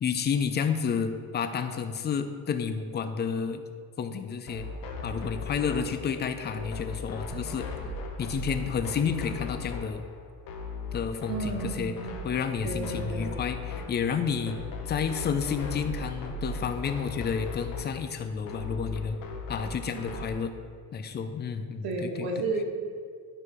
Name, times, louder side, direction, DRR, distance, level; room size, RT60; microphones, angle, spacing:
voice 1, 0.0-3.6 4.0-4.7 5.0-7.7 8.2-10.0 10.9-11.9 12.2-14.6 14.9-19.2 19.5-20.5 20.9-22.3, left 6 dB, 25° left, 8 dB, 0.5 m, -30 dB
sound 1, 4.5-20.4, left 3 dB, 65° left, 1.1 m, -38 dB
voice 2, 11.3-12.1 12.6-13.3 19.9-20.1 21.8-22.6, right 3 dB, 80° right, 0 dB, 1.6 m, -32 dB
11.0 x 4.7 x 4.9 m, 2.1 s
cardioid pair, 150°, 38 cm